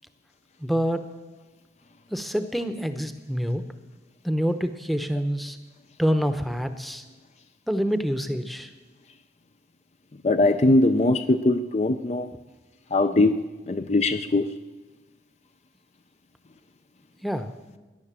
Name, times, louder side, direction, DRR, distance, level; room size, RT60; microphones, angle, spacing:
voice 1, 0.6-1.1 2.1-3.6 4.2-5.6 6.0-7.0 7.7-8.7 17.2-17.5, equal, ahead, 9 dB, 0.8 m, -26 dB
voice 2, 10.2-12.3 12.9-13.3 13.7-14.5, left 2 dB, 35° left, 9 dB, 0.5 m, -21 dB
18.0 x 11.0 x 7.4 m, 1.2 s
head